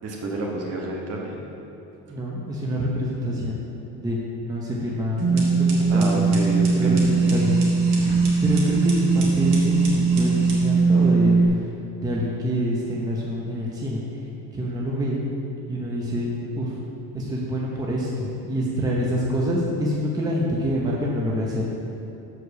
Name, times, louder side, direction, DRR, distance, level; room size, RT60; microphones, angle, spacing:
voice 1, 0.0-1.4 2.1-2.2 5.9-7.4, right 2 dB, 50° right, -2 dB, 1.4 m, -30 dB
voice 2, 2.1-3.6 3.9-6.3 6.8-7.6 8.4-11.4 12.0-14.0 14.5-15.2 15.7-16.8 17.1-21.6, equal, 10° right, -4 dB, 0.8 m, -26 dB
sound 1, 5.2-11.5, right 4 dB, 90° right, 1.8 m, -20 dB
6.7 x 4.8 x 6.6 m, 3.0 s
cardioid pair, 155°, 33 cm